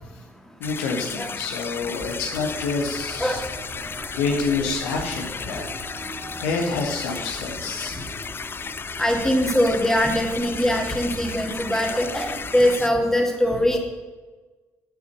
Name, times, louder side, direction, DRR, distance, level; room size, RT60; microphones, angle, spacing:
voice 1, 0.6-3.4 3.8-3.9 4.1-5.7 6.0-6.1 6.4-8.0, left 4 dB, 70° left, 1 dB, 1.4 m, -27 dB
sound 1, 0.6-12.9, left 5 dB, 30° left, 0.4 m, -35 dB
sound 2, 2.3-12.8, right 1 dB, 15° right, 2.9 m, -41 dB
voice 2, 9.0-13.8, equal, 5° left, 2 dB, 2.4 m, -22 dB
8.4 x 7.7 x 6.7 m, 1.3 s
figure-of-eight pair, 45°, 7 cm